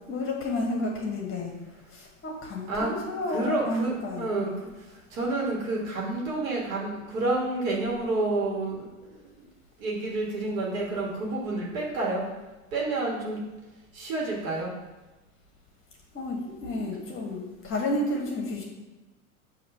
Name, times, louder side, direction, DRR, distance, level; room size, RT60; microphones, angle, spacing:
voice 1, 0.1-1.5 1.9-4.3 16.1-18.6, left 1 dB, 30° left, -1 dB, 1.3 m, -31 dB
voice 2, 3.3-9.5 9.8-12.2 12.7-13.4 13.9-14.7, right 2 dB, 70° right, -3 dB, 1.8 m, -29 dB
5.8 x 3.0 x 5.4 m, 1.1 s
hypercardioid pair, 100°, 42 cm